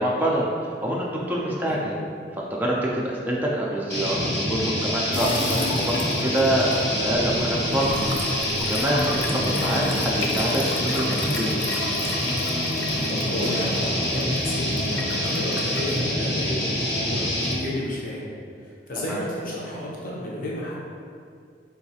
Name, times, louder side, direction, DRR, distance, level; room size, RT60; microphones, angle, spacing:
voice 1, 0.0-2.0 2.3-10.6 10.9-11.6 19.1-19.3, right 1 dB, 10° right, -4 dB, 0.3 m, -26 dB
sound 1, 3.9-17.6, equal, 70° left, 1.3 m, -26 dB
sound 2, 5.1-16.1, left 2 dB, 85° left, 0.4 m, -33 dB
voice 2, 13.1-18.3 18.6-20.7, left 1 dB, 50° left, -5 dB, 0.7 m, -32 dB
3.8 x 2.3 x 2.7 m, 2.3 s
head